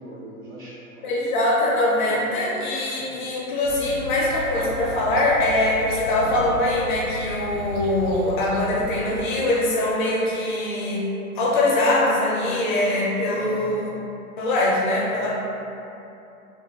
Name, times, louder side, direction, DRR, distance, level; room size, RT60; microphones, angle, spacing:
voice 1, 0.0-1.4 2.0-2.3 6.1-6.3 13.3-13.8 15.1-15.3, right 1 dB, 20° right, -8 dB, 0.5 m, -41 dB
voice 2, 1.0-11.0 11.4-13.9 14.4-15.3, left 1 dB, 35° left, -5 dB, 0.5 m, -22 dB
sound 1, 3.6-9.0, left 1 dB, 80° right, 0.5 m, -35 dB
2.8 x 2.1 x 2.8 m, 2.8 s
hypercardioid pair, 110°, 44 cm